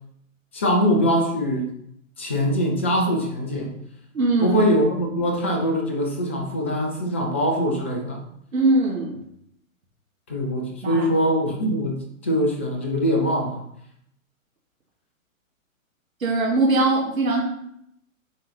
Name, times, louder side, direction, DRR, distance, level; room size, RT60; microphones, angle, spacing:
voice 1, 0.5-1.7 2.2-3.7 4.4-8.2 10.3-13.6, equal, 10° left, 2 dB, 0.3 m, -23 dB
voice 2, 4.1-4.6 8.5-9.2 10.8-11.1 16.2-17.4, right 2 dB, 80° right, -2 dB, 2.1 m, -21 dB
9.5 x 3.8 x 4.2 m, 0.73 s
figure-of-eight pair, 125°, 41 cm